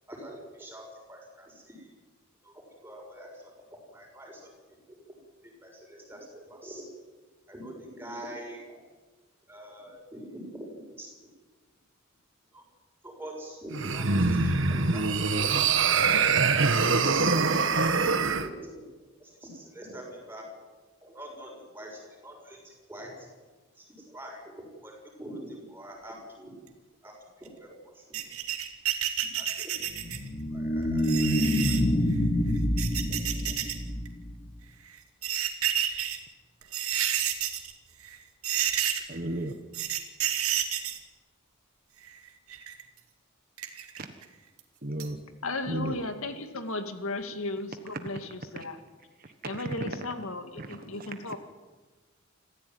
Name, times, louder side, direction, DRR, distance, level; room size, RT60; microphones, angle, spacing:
voice 1, 0.1-1.9 2.4-3.5 3.9-4.5 4.9-5.0 5.4-6.9 7.5-8.8 9.5-11.1 12.5-12.6 13.0-15.0 15.3-17.6 18.4-18.8 19.2-20.4 21.0-23.1 23.8-26.6 27.0-28.0 29.3-29.8 30.5-31.8 33.1-33.2 33.4-33.5, right 1 dB, 10° right, 0 dB, 6.9 m, -45 dB
sound 1, 13.7-18.5, right 4 dB, 60° right, 1.5 m, -24 dB
sound 2, 28.1-30.3 31.0-31.8 32.6-33.7 34.0-34.1 35.0-36.2 36.6-37.7 38.0-38.2 38.4-39.2 39.7-41.0 42.0-42.8 43.6-44.2 44.6-44.7 45.0-45.1, right 10 dB, 90° right, 2.6 m, -30 dB
sound 3, 29.9-34.4, equal, 30° left, 2.9 m, -27 dB
voice 2, 39.1-39.5 44.8-45.2 45.7-45.9 49.2-50.0 50.6-51.2, right 1 dB, 40° right, 7 dB, 1.4 m, -35 dB
voice 3, 45.4-48.8 49.4-51.4, left 2 dB, 75° left, 7 dB, 2.3 m, -35 dB
26.5 x 15.0 x 9.6 m, 1.3 s
head